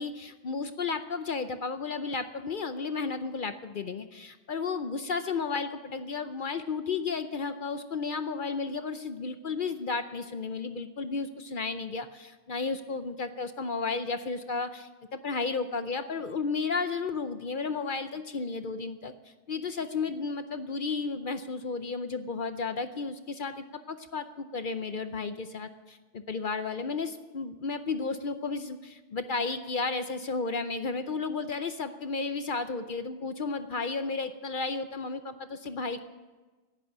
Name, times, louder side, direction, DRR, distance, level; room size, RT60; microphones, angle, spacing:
voice 1, 0.0-19.1 19.5-36.0, left 4 dB, 50° left, 10 dB, 0.7 m, -33 dB
11.0 x 9.8 x 10.0 m, 1.3 s
omnidirectional pair, 1.4 m